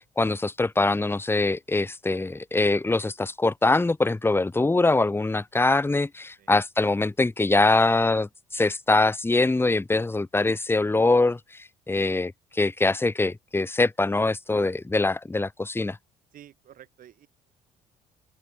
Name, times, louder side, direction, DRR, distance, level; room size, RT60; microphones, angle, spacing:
voice 1, 0.0-11.4 11.9-16.0, left 2 dB, 15° left, 1.5 m, -23 dB
voice 2, 16.3-17.3, right 11 dB, 65° right, 7.4 m, -51 dB
open air
supercardioid pair, 70°, 16 cm